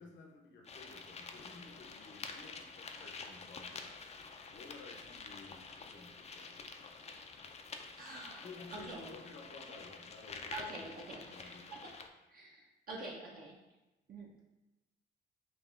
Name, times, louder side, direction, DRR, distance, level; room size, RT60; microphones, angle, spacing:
voice 1, 0.0-3.9 4.5-6.6 8.4-10.9 11.2-11.9, left 3 dB, 65° left, 0 dB, 0.8 m, -54 dB
sound 1, 0.6-12.1, left 4 dB, 35° left, 0.4 m, -49 dB
voice 2, 8.0-9.1 10.5-11.8 12.3-13.6 14.1-14.4, right 2 dB, 50° right, -3 dB, 0.7 m, -47 dB
6.0 x 2.6 x 2.4 m, 1.0 s
cardioid pair, 90°, 20 cm